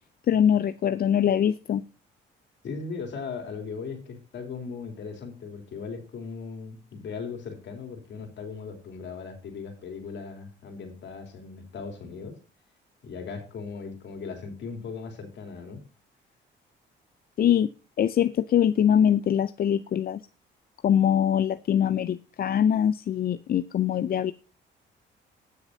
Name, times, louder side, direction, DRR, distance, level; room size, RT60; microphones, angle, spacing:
voice 1, 0.3-1.8 17.4-17.7 18.0-20.2 20.8-24.3, left 9 dB, 50° left, 0.5 m, -23 dB
voice 2, 2.6-12.3 13.0-15.8, left 5 dB, 65° left, 3.2 m, -38 dB
19.0 x 6.6 x 2.7 m
cardioid pair, 90°, 20 cm